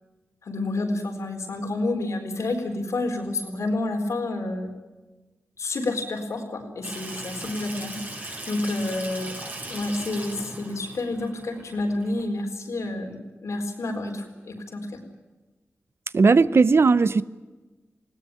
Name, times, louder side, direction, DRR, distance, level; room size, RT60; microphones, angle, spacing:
voice 1, 0.4-4.7 5.6-15.0, left 2 dB, 85° left, 3 dB, 4.2 m, -29 dB
Water tap faucet / Sink (filling or washing), 6.8-12.3, right 2 dB, 35° right, 5.0 m, -38 dB
voice 2, 16.1-17.2, right 4 dB, 60° right, 16 dB, 0.7 m, -17 dB
20.0 x 18.5 x 9.1 m, 1.2 s
wide cardioid pair, 70°, 5 cm